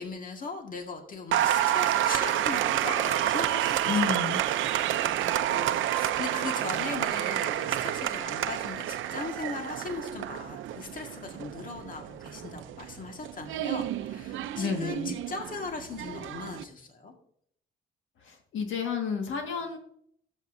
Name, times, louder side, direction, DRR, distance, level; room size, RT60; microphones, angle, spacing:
voice 1, 0.0-4.1 4.4-4.5 4.9-17.1, left 4 dB, 45° left, 3 dB, 1.8 m, -39 dB
Applause, 1.3-16.6, right 12 dB, 80° right, 0.6 m, -29 dB
voice 2, 3.9-4.4 14.6-15.2 18.2-19.8, left 6 dB, 80° left, 3 dB, 1.8 m, -31 dB
13.0 x 8.1 x 2.7 m, 0.67 s
cardioid pair, 90°, 20 cm